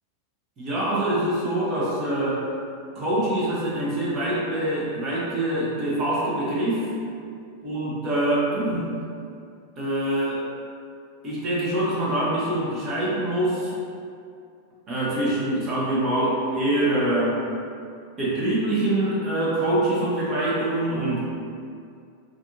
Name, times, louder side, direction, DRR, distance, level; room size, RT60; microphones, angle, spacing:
voice 1, 0.6-2.4 2.9-6.9 7.6-8.9 9.8-10.5 11.2-13.8 14.9-17.4 18.2-21.3, right 1 dB, 30° right, -8 dB, 0.7 m, -24 dB
2.5 x 2.4 x 2.6 m, 2.4 s
figure-of-eight pair, 90°, 0 cm